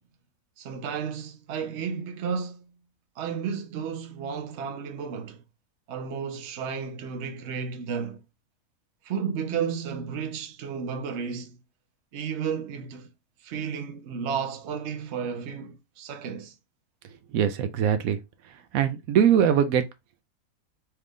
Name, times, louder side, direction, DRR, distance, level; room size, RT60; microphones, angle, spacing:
voice 1, 0.6-2.6 3.2-5.4 5.9-8.2 9.0-11.6 12.1-13.1 13.4-16.5, right 6 dB, 60° right, 0.9 m, -32 dB
voice 2, 17.3-18.2 18.7-19.8, right 9 dB, 80° right, 1.1 m, -22 dB
4.3 x 2.5 x 3.4 m
omnidirectional pair, 1.4 m